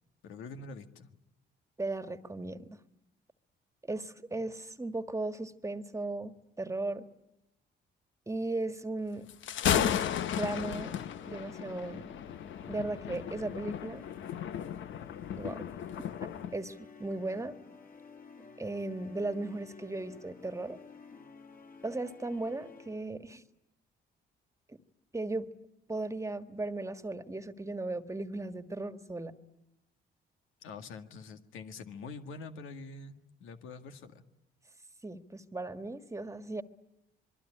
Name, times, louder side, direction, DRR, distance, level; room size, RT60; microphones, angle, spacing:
voice 1, 0.2-1.1 30.6-34.2, left 4 dB, 90° left, 7 dB, 2.0 m, -45 dB
voice 2, 1.8-2.8 3.8-7.1 8.3-9.2 9.7-9.9 10.4-10.9 11.3-12.1 12.7-14.0 15.4-15.7 16.5-17.5 18.6-20.8 21.8-23.4 24.7-24.8 25.1-25.5 25.9-29.3 35.0-36.6, right 2 dB, 15° right, 10 dB, 1.7 m, -36 dB
Thunder, 9.3-16.5, left 10 dB, 75° left, 1.1 m, -34 dB
sound 1, 10.5-23.2, left 5 dB, 50° left, 5.2 m, -52 dB
26.5 x 22.5 x 10.0 m, 0.87 s
cardioid pair, 90°, 20 cm